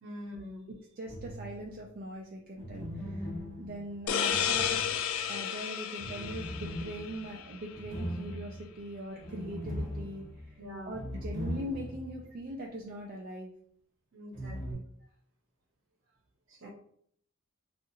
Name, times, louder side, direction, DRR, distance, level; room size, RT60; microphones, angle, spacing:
voice 1, 0.0-0.7 10.6-11.0 14.1-14.8 16.5-16.7, left 1 dB, 65° right, 0 dB, 0.8 m, -44 dB
voice 2, 0.7-3.3 3.6-4.8 5.3-13.5 16.6-16.7, right 1 dB, 45° right, -2 dB, 0.4 m, -41 dB
sound 1, 1.0-1.8 2.6-5.3 6.0-12.2 12.5-12.6 14.3-14.7, equal, 5° left, 1.5 m, -40 dB
sound 2, 4.1-7.5, left 8 dB, 70° left, 0.3 m, -32 dB
2.8 x 2.4 x 2.7 m, 0.64 s
head